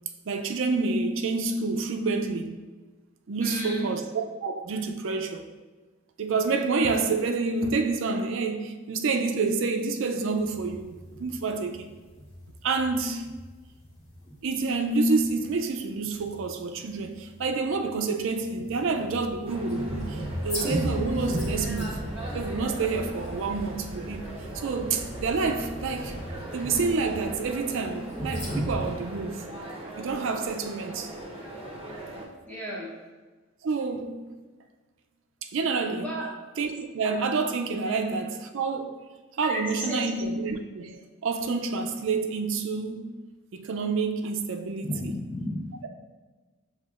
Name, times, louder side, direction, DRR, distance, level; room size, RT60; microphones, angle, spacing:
voice 1, 0.3-2.6 3.3-5.4 6.2-11.9 12.6-13.3 14.4-22.0 22.3-24.3 24.5-26.2 26.5-29.4 30.0-31.1 33.6-34.3 35.4-36.1 36.6-39.0 39.4-43.1 43.5-45.1, right 4 dB, 65° right, 0.4 m, -28 dB
voice 2, 3.4-3.9 32.5-32.9 36.0-36.2 37.8-38.2 39.4-40.1 44.8-45.7, left 1 dB, 10° left, 1.0 m, -34 dB
sound 1, 10.3-28.9, equal, 50° left, 1.3 m, -36 dB
sound 2, 19.4-32.2, right 1 dB, 30° right, 0.8 m, -40 dB
7.4 x 2.8 x 2.4 m
head